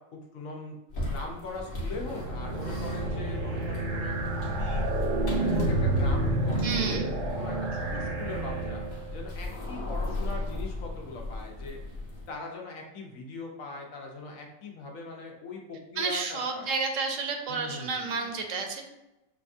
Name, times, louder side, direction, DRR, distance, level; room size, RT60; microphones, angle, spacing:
voice 1, 0.1-0.8 1.1-4.1 4.4-4.8 5.2-7.0 7.4-8.8 9.1-11.8 12.3-16.7 17.5-18.3, left 3 dB, 80° left, 0 dB, 1.2 m, -41 dB
sound 1, 0.9-12.3, left 2 dB, 45° left, 1.1 m, -35 dB
sound 2, 1.8-9.2, right 2 dB, 55° right, 0.6 m, -30 dB
voice 2, 6.6-7.1 16.0-18.8, right 4 dB, 75° right, 4 dB, 1.0 m, -31 dB
5.6 x 2.3 x 2.6 m, 0.94 s
omnidirectional pair, 1.4 m